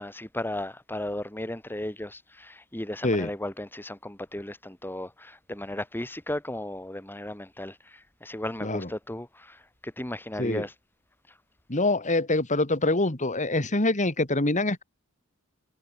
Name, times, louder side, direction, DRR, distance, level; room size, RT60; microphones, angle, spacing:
voice 1, 0.0-10.7 11.3-11.4, left 1 dB, 10° left, 1.9 m, -35 dB
voice 2, 11.7-14.8, left 2 dB, 35° left, 2.8 m, -25 dB
head